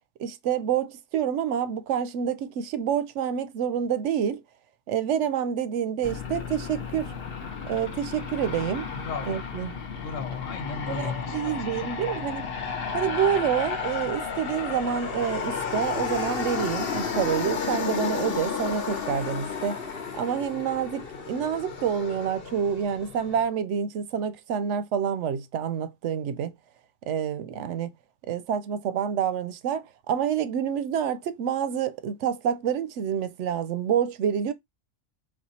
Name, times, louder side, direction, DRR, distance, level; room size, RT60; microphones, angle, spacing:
voice 1, 0.2-4.4 4.9-7.1 7.6-8.9 9.3-9.8 10.9-12.5 12.9-19.8 20.1-26.5 27.1-27.9 28.3-34.5, right 8 dB, 75° right, 0.9 m, -28 dB
Aircraft, 6.0-23.5, left 6 dB, 55° left, 1.0 m, -33 dB
voice 2, 8.9-9.4 10.0-12.3, left 5 dB, 85° left, 1.4 m, -36 dB
4.3 x 2.3 x 4.1 m
omnidirectional pair, 1.3 m